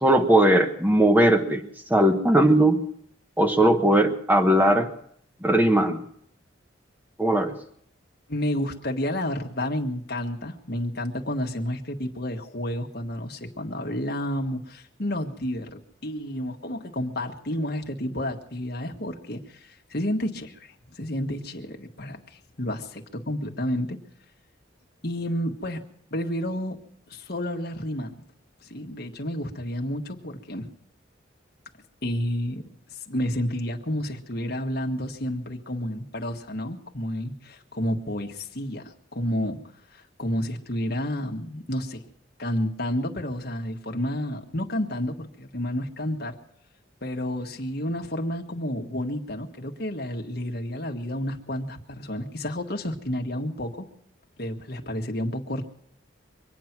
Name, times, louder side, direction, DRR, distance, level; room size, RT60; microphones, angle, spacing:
voice 1, 0.0-2.8 3.4-4.9 5.4-6.0 7.2-7.5, right 1 dB, 10° right, 5 dB, 1.1 m, -19 dB
voice 2, 8.3-24.0 25.0-25.8 26.1-26.8 27.1-28.1 28.6-30.7 32.0-39.6 39.9-42.0 42.4-46.3 47.0-53.9 54.4-55.6, left 1 dB, 50° left, 2 dB, 1.6 m, -30 dB
24.5 x 9.4 x 6.0 m, 0.67 s
head